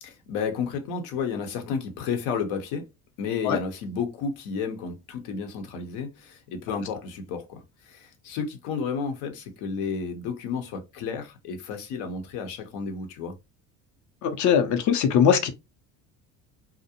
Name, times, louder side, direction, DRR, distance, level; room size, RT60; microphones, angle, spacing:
voice 1, 0.0-2.8 3.2-13.4, left 6 dB, 80° left, 0.8 m, -32 dB
voice 2, 14.2-15.5, left 8 dB, 50° left, 0.6 m, -21 dB
2.4 x 2.1 x 2.7 m
supercardioid pair, 90°, 39 cm